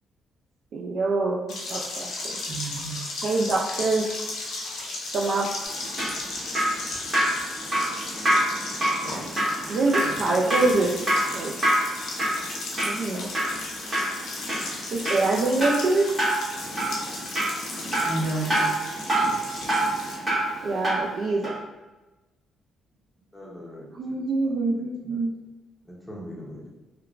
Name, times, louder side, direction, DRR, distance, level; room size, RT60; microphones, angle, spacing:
voice 1, 0.7-1.4 1.7-2.1 3.2-4.0 5.1-5.5 9.7-10.9 11.3-11.5 12.9-13.3 14.9-16.1 20.6-21.5 24.0-25.3, right 3 dB, 65° right, -3 dB, 0.3 m, -24 dB
sound 1, 1.5-20.2, left 2 dB, 75° left, 0.6 m, -35 dB
voice 2, 2.5-3.0 6.9-7.7 18.0-18.7, right 2 dB, 45° right, -8 dB, 1.5 m, -32 dB
Drip, 5.7-21.1 21.4-21.6, right 1 dB, 30° right, 1.4 m, -27 dB
voice 3, 23.3-25.2 25.9-26.7, equal, 5° left, -4 dB, 0.6 m, -43 dB
3.0 x 2.1 x 2.4 m, 1.1 s
cardioid pair, 90°, 0 cm